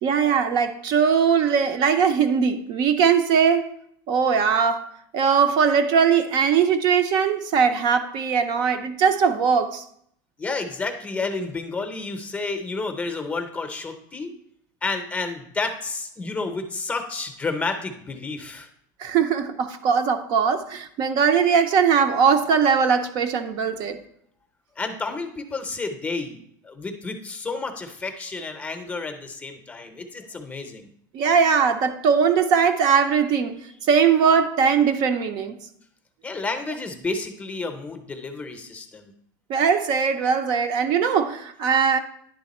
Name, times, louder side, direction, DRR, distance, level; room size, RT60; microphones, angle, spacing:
voice 1, 0.0-3.7 4.1-9.8 19.0-24.0 31.1-33.6 33.9-35.6 39.5-42.0, right 6 dB, 45° right, 0.6 m, -20 dB
voice 2, 10.4-14.3 14.8-18.7 24.8-30.9 36.2-39.1, left 3 dB, 15° left, 0.7 m, -31 dB
10.5 x 3.5 x 4.1 m
supercardioid pair, 140°, 10 cm